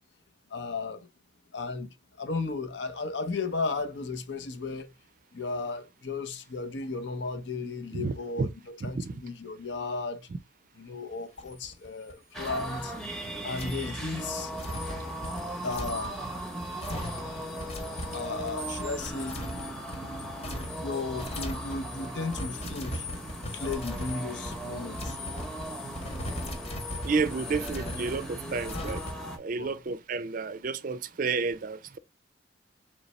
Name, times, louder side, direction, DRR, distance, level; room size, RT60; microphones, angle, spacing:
voice 1, 0.5-1.1 1.5-4.9 5.3-10.3 10.8-12.9 13.4-14.5 15.6-16.2 18.1-19.4 20.8-23.1 23.5-25.2 29.6-29.8, left 3 dB, 70° left, 0.7 m, -35 dB
voice 2, 7.9-8.5 8.8-9.1 27.0-29.0 29.3-32.0, right 4 dB, 45° right, 0.4 m, -31 dB
sound 1, 11.4-12.1 12.4-12.7 13.5-29.1, left 1 dB, 35° left, 0.7 m, -39 dB
sound 2, 12.3-29.4, right 1 dB, 5° left, 0.8 m, -38 dB
4.0 x 3.2 x 3.1 m
head